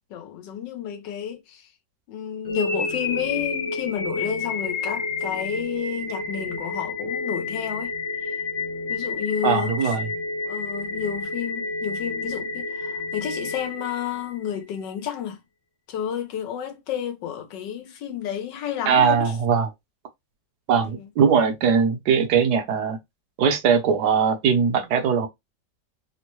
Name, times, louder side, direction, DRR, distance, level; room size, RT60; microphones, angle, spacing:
voice 1, 0.0-1.7 2.1-7.9 8.2-8.4 8.9-9.9 10.4-15.4 15.9-19.3, left 9 dB, 85° left, 1.4 m, -31 dB
sound 1, 2.4-14.5, left 3 dB, 45° left, 1.1 m, -30 dB
voice 2, 9.4-10.1 18.9-19.7 20.7-23.0 23.4-25.3, right 6 dB, 75° right, 1.2 m, -20 dB
3.5 x 2.1 x 2.9 m
omnidirectional pair, 1.9 m